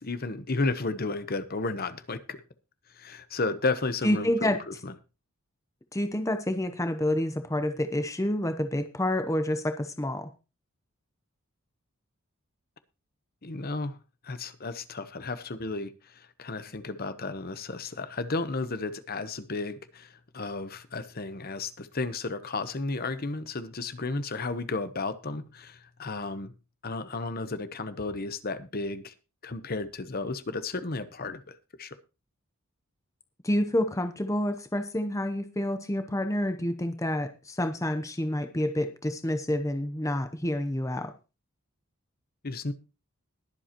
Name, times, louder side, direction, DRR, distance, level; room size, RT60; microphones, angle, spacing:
voice 1, 0.0-2.4 2.9-4.9 13.4-14.0 14.2-26.5 26.8-29.1 29.4-32.0 42.4-42.7, left 3 dB, 45° left, 12 dB, 0.9 m, -33 dB
voice 2, 4.0-4.6 5.9-10.3 33.4-41.1, left 1 dB, 15° left, 8 dB, 0.7 m, -28 dB
21.5 x 7.8 x 3.0 m, 0.30 s
head